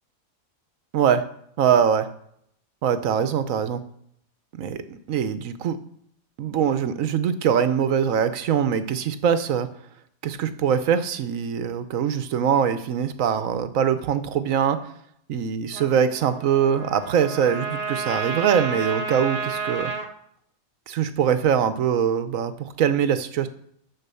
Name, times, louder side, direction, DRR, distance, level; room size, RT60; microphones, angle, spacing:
voice 1, 0.9-1.2 1.6-2.1 2.8-3.8 4.5-5.8 6.4-9.7 10.2-14.8 15.3-19.9 20.9-23.5, right 8 dB, 70° right, 11 dB, 1.2 m, -23 dB
Trumpet, 15.7-20.1, right 4 dB, 40° right, 1.2 m, -31 dB
12.5 x 4.6 x 6.8 m, 0.70 s
omnidirectional pair, 1.5 m